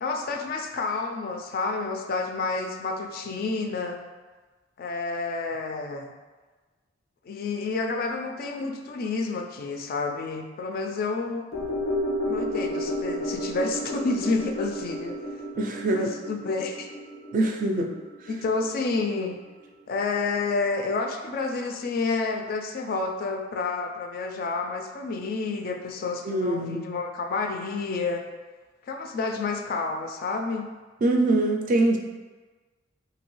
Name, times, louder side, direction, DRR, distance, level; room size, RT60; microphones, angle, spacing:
voice 1, 0.0-4.0 4.8-6.1 7.3-11.4 12.3-15.2 15.9-16.9 18.3-19.4 19.9-28.2 28.9-30.7, left 3 dB, 50° left, 3 dB, 0.3 m, -29 dB
sound 1, 11.5-20.0 20.3-20.4, equal, 90° left, 0.7 m, -32 dB
voice 2, 15.6-16.1 17.3-18.0 26.2-26.8 31.0-32.0, right 2 dB, 45° right, 2 dB, 0.3 m, -23 dB
3.0 x 2.7 x 3.0 m, 1.3 s
head